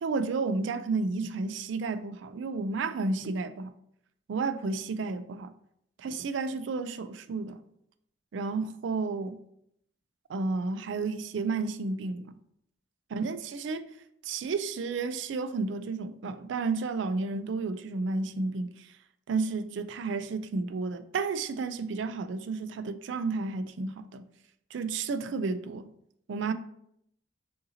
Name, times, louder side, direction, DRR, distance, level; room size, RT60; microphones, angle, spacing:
voice 1, 0.0-3.7 4.3-5.5 6.0-7.6 8.3-9.4 10.3-12.3 13.1-13.9 14.2-18.9 19.3-24.3 24.7-25.9 26.3-26.5, right 4 dB, 70° right, 0.4 m, -32 dB
6.4 x 2.8 x 2.7 m
head